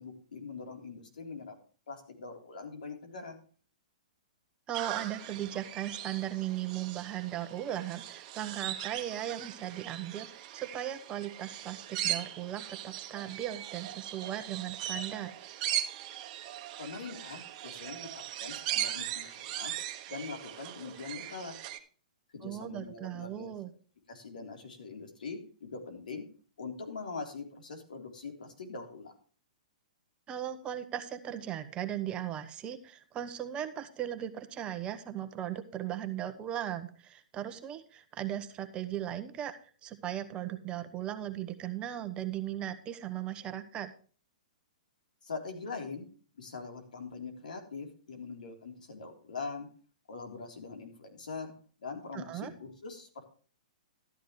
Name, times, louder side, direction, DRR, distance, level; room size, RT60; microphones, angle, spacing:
voice 1, 0.0-1.6 1.9-3.4 16.8-19.7 20.1-21.6 22.3-23.5 24.1-26.3 26.6-29.1 45.2-46.1 46.3-49.7 50.1-51.5 51.8-53.3, left 4 dB, 85° left, 3 dB, 3.6 m, -42 dB
voice 2, 4.7-15.3 22.4-23.7 30.3-43.9 52.1-52.5, right 11 dB, 25° right, 9 dB, 1.1 m, -37 dB
sound 1, 4.7-21.8, right 12 dB, 40° right, 1.3 m, -39 dB
13.0 x 10.0 x 3.2 m, 0.41 s
hypercardioid pair, 140°, 4 cm